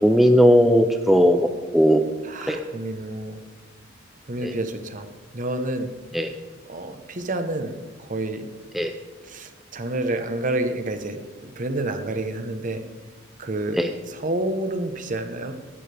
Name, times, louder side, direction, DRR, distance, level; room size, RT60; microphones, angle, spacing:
voice 1, 0.0-2.0 2.5-2.6 4.4-4.5 6.1-6.3 8.7-8.9 13.8-13.9, equal, ahead, 5 dB, 0.5 m, -17 dB
voice 2, 2.2-3.4 4.3-5.1 5.3-5.9 6.7-8.5 9.2-12.8 13.4-13.8 14.1-15.5, right 1 dB, 40° right, 8 dB, 0.9 m, -29 dB
18.0 x 11.5 x 3.4 m, 1.4 s
head